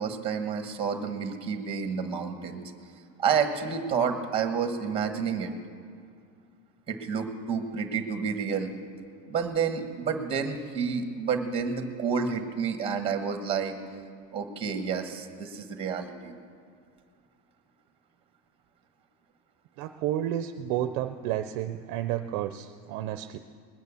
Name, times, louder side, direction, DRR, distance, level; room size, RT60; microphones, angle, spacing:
voice 1, 0.0-2.6 3.2-5.5 6.9-8.7 9.3-13.8 14.3-16.3, right 6 dB, 15° right, 7 dB, 1.0 m, -29 dB
voice 2, 19.8-23.4, right 12 dB, 45° right, 9 dB, 0.5 m, -31 dB
20.5 x 9.2 x 6.9 m, 2.2 s
cardioid pair, 175°, 43 cm